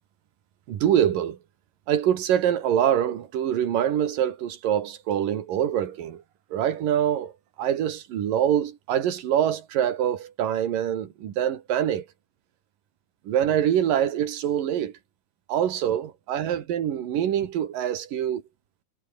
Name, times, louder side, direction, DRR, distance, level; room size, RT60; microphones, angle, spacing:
voice 1, 0.7-1.4 1.9-6.2 6.5-7.3 7.6-12.1 13.3-14.9 15.5-18.4, right 10 dB, 70° right, 3.5 m, -24 dB
omnidirectional pair, 4.1 m